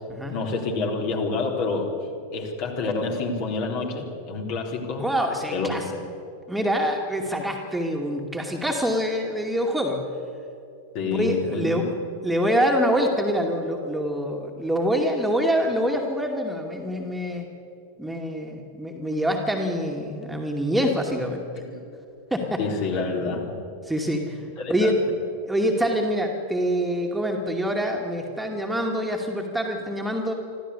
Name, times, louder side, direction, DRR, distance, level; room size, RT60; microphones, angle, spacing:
voice 1, 0.3-1.9 2.3-5.1 5.5-6.0 10.9-11.8 21.7-21.8 22.6-23.6 24.6-24.9, left 3 dB, 45° left, 1 dB, 3.8 m, -28 dB
voice 2, 5.0-5.8 6.5-10.0 11.1-11.9 12.2-17.4 18.0-21.6 22.3-22.6 23.8-25.0 25.5-30.3, equal, 5° right, 1 dB, 2.4 m, -25 dB
25.5 x 14.5 x 8.3 m, 2.6 s
figure-of-eight pair, 90°, 0 cm